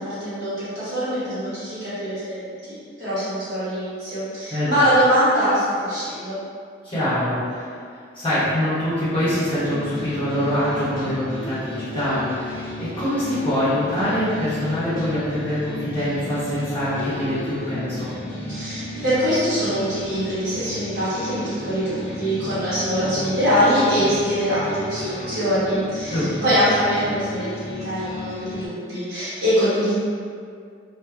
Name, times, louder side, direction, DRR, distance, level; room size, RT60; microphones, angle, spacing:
voice 1, 0.0-6.4 18.5-29.9, equal, 60° right, -13 dB, 1.3 m, -23 dB
voice 2, 6.8-7.7 8.1-18.1 26.1-26.5, left 1 dB, 30° left, -14 dB, 1.0 m, -24 dB
sound 1, 9.2-28.7, left 1 dB, 45° left, 0.6 m, -33 dB
2.6 x 2.1 x 2.5 m, 2.2 s
head